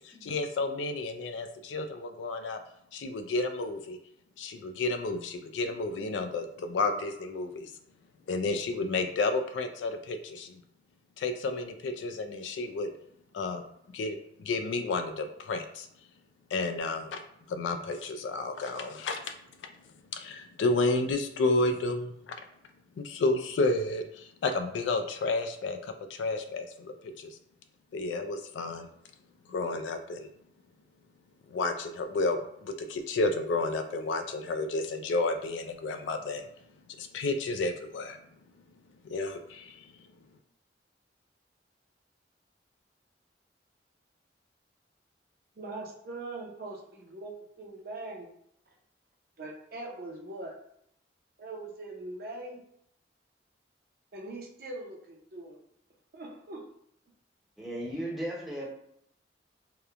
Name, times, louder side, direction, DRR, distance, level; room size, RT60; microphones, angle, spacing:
voice 1, 0.0-2.6 2.9-4.0 4.4-7.7 8.3-10.6 11.2-12.9 13.3-13.6 13.9-15.9 16.5-17.2 17.5-19.3 20.1-22.4 23.0-27.3 27.9-28.9 29.5-30.3 31.5-36.5 37.0-38.2 39.0-39.9, left 3 dB, 85° left, 7 dB, 0.3 m, -31 dB
voice 2, 45.6-48.3 49.4-50.5 51.4-52.6 54.1-55.6 56.1-56.7, right 2 dB, 55° right, -1 dB, 0.5 m, -41 dB
voice 3, 57.6-58.7, right 1 dB, ahead, -5 dB, 0.6 m, -36 dB
2.9 x 2.0 x 2.4 m, 0.72 s
head